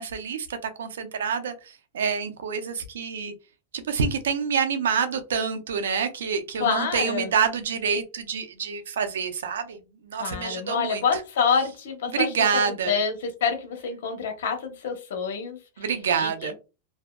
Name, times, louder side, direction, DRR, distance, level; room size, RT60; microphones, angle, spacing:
voice 1, 0.0-3.3 3.7-11.0 12.1-13.0 15.8-16.5, right 6 dB, 90° right, 9 dB, 0.5 m, -27 dB
voice 2, 6.5-7.3 10.2-12.3 12.6-15.6 16.2-16.5, left 6 dB, 75° left, 5 dB, 0.9 m, -27 dB
2.6 x 2.2 x 2.2 m, 0.29 s
supercardioid pair, 140°, 0 cm